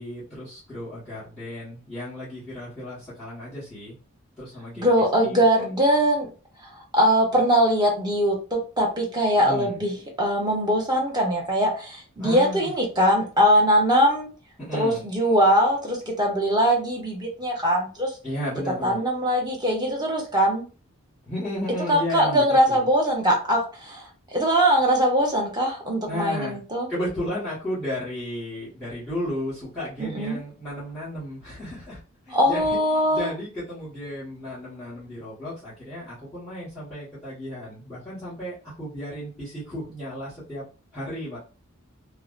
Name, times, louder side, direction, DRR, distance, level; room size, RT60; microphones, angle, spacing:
voice 1, 0.0-4.0 4.4-4.9 5.2-5.4 9.3-9.8 12.2-12.7 14.6-15.0 18.2-19.0 21.3-22.9 26.1-26.6 26.9-40.6 40.9-41.4, equal, 5° left, -12 dB, 1.3 m, -34 dB
voice 2, 4.8-6.3 6.9-14.3 14.7-18.1 18.8-20.7 21.9-26.9 30.0-30.4 32.3-33.3, equal, 20° right, -1 dB, 0.8 m, -21 dB
2.6 x 2.1 x 2.5 m, 0.34 s
head